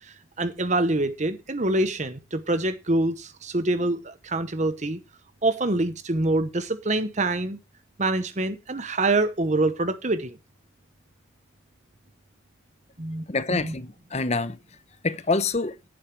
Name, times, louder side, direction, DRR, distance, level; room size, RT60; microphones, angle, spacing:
voice 1, 0.0-5.0 5.4-7.6 8.0-10.4 13.0-13.7, right 2 dB, 35° right, 1.0 m, -25 dB
voice 2, 13.3-14.6 15.0-15.8, left 3 dB, 35° left, 0.9 m, -26 dB
11.0 x 8.8 x 4.6 m
head